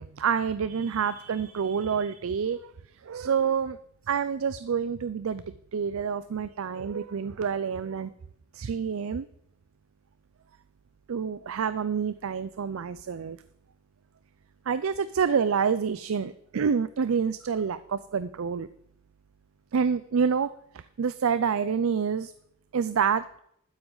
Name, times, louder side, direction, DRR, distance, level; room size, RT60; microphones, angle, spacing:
voice 1, 0.0-2.7 3.0-3.8 4.1-5.4 5.7-8.1 8.5-9.3 11.1-13.4 14.7-18.7 19.7-22.3 22.7-23.2, right 6 dB, 80° right, 14 dB, 0.4 m, -28 dB
12.5 x 9.6 x 3.9 m, 0.72 s
head